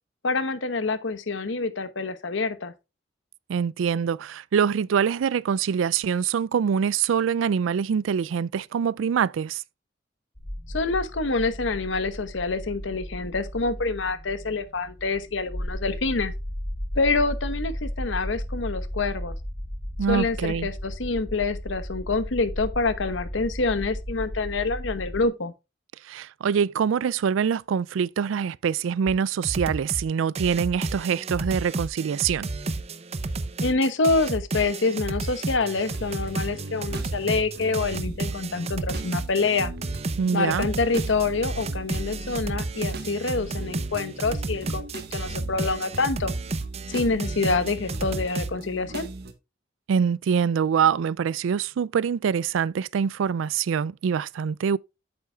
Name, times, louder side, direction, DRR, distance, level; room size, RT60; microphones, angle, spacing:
voice 1, 0.2-2.7 10.7-16.3 16.9-19.4 20.1-25.5 33.6-39.7 40.3-46.3 46.9-49.1, left 3 dB, 75° left, 1.0 m, -26 dB
voice 2, 3.5-9.6 20.0-20.7 26.0-32.5 40.2-40.7 49.9-54.8, right 7 dB, 85° right, 0.3 m, -24 dB
sound 1, 10.4-25.3, equal, 20° left, 1.1 m, -35 dB
sound 2, 29.1-29.2 29.4-30.1 30.4-48.5, right 2 dB, 35° right, 0.6 m, -32 dB
sound 3, 35.6-49.3, right 2 dB, 55° right, 1.2 m, -40 dB
8.7 x 8.1 x 2.3 m
head